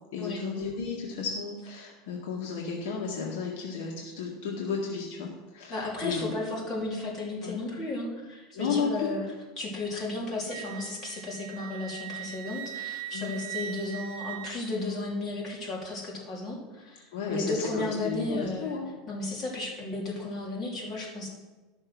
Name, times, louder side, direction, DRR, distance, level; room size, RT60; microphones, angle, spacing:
voice 1, 0.1-6.3 7.4-7.6 8.5-9.1 13.1-13.3 17.1-18.9, left 5 dB, 75° left, -1 dB, 1.9 m, -33 dB
voice 2, 5.7-9.2 9.6-18.8 19.1-21.3, left 2 dB, 30° left, -2 dB, 3.2 m, -34 dB
Wind instrument woodwind instrument, 10.5-15.1, right 11 dB, 75° right, 0.9 m, -40 dB
13.0 x 6.4 x 6.2 m, 1.2 s
supercardioid pair, 140°, 0 cm